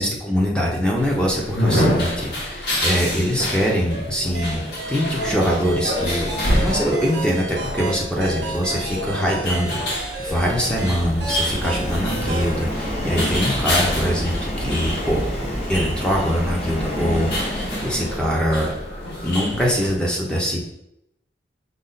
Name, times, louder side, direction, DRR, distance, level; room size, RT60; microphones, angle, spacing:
voice 1, 0.0-4.6 4.9-6.3 6.6-15.2 15.7-18.7 19.2-20.6, equal, 5° left, -2 dB, 0.7 m, -23 dB
sound 1, 0.9-19.9, left 1 dB, 70° left, 1.4 m, -27 dB
sound 2, 4.3-12.6, right 2 dB, 75° right, 0.8 m, -32 dB
Subway metro underground, 8.6-19.9, equal, 40° left, 1.1 m, -30 dB
5.3 x 2.4 x 3.9 m, 0.82 s
head